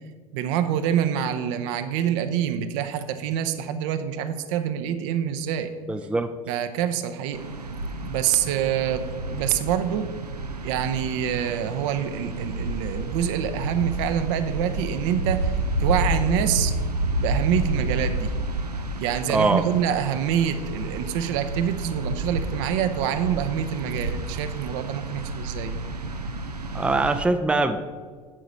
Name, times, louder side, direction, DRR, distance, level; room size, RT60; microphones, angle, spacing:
voice 1, 0.3-5.7 6.5-7.5 8.0-10.1 10.6-16.7 17.2-18.3 19.0-25.8, right 9 dB, 55° right, 9 dB, 0.7 m, -26 dB
voice 2, 5.9-6.3 19.3-19.7 26.7-27.8, right 2 dB, 5° right, 8 dB, 0.5 m, -22 dB
sound 1, 7.3-27.2, right 2 dB, 85° right, 0.5 m, -30 dB
9.9 x 4.9 x 5.4 m, 1.5 s
figure-of-eight pair, 70°, 20 cm